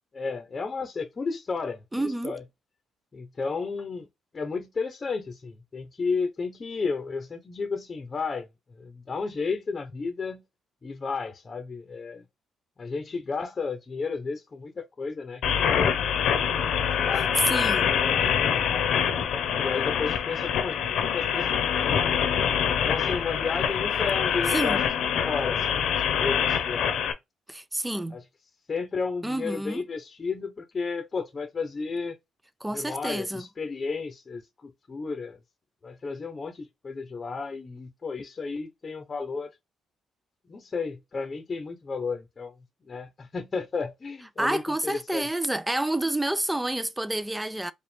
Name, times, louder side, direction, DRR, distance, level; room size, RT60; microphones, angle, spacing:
voice 1, 0.1-2.4 3.1-4.1 4.3-8.5 8.8-10.4 10.8-12.2 12.8-15.7 16.2-16.5 17.0-18.9 19.6-22.3 22.8-24.8 25.3-27.0 28.1-28.2 28.7-32.2 32.7-35.4 35.8-39.5 40.5-42.5 42.9-45.3, left 4 dB, 35° left, 0.8 m, -33 dB
voice 2, 1.9-2.3 17.4-17.9 24.5-24.8 27.5-28.2 29.2-29.8 32.6-33.4 44.4-47.7, right 1 dB, 10° right, 0.5 m, -29 dB
sound 1, 15.4-27.1, left 8 dB, 75° left, 0.9 m, -25 dB
4.9 x 2.4 x 3.3 m
cardioid pair, 90°, 0 cm